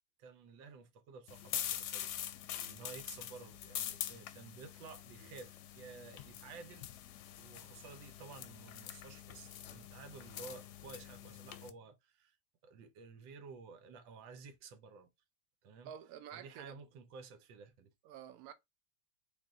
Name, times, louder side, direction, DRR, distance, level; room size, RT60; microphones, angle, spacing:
voice 1, 0.2-6.9 7.4-12.4 12.6-15.1 15.6-15.9 16.3-17.9, right 5 dB, 90° right, 1.5 m, -53 dB
sound 1, 1.3-11.7, left 11 dB, 70° left, 1.1 m, -45 dB
voice 2, 15.8-16.7 18.0-18.5, right 9 dB, 65° right, 1.0 m, -49 dB
3.8 x 2.7 x 3.7 m
omnidirectional pair, 2.0 m